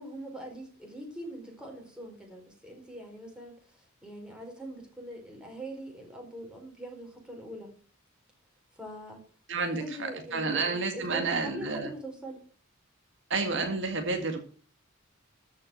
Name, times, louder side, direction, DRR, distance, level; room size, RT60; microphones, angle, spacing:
voice 1, 0.0-7.7 8.8-9.2 9.6-12.4, right 1 dB, 5° right, 0 dB, 4.5 m, -43 dB
voice 2, 9.5-9.8 10.3-11.9 13.3-14.4, right 3 dB, 60° right, 5 dB, 1.9 m, -29 dB
13.5 x 6.2 x 7.7 m, 0.42 s
head